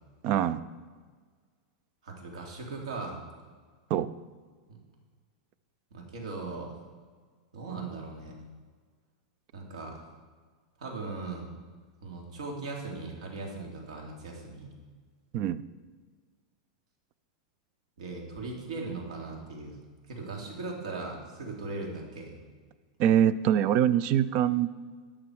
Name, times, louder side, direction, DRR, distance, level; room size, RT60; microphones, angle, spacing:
voice 1, 0.2-0.6 3.9-4.1 15.3-15.6 23.0-24.7, right 10 dB, 35° right, 16 dB, 0.4 m, -24 dB
voice 2, 2.0-3.2 4.7-4.8 5.9-6.8 7.5-8.3 9.5-10.1 10.8-11.5 12.0-14.7 18.0-19.8 20.1-22.4, right 3 dB, 85° right, 0 dB, 3.1 m, -38 dB
13.0 x 8.7 x 4.8 m, 1.6 s
supercardioid pair, 165°, 3 cm